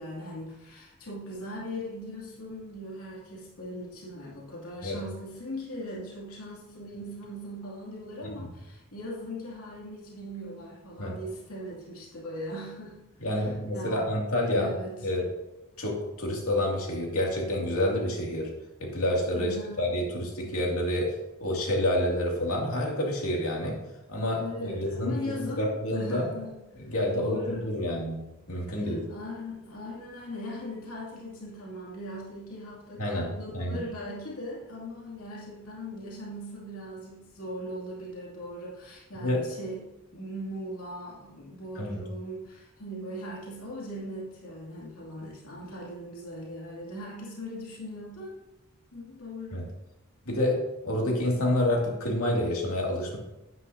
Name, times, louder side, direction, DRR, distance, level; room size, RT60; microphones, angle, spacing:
voice 1, 0.0-14.1 14.5-15.0 19.4-19.9 24.4-26.6 27.1-27.7 28.7-48.4 48.9-49.7, equal, 90° left, -4 dB, 2.5 m, -39 dB
voice 2, 13.2-14.7 15.0-15.2 15.8-18.5 18.8-21.1 21.4-23.8 24.1-25.2 25.6-26.3 26.9-28.2 28.5-29.0 33.0-33.2 33.5-33.8 39.2-39.4 41.8-42.0 49.5-49.6 50.3-53.2, left 1 dB, 70° left, -1 dB, 2.4 m, -28 dB
10.0 x 9.3 x 2.7 m, 0.99 s
head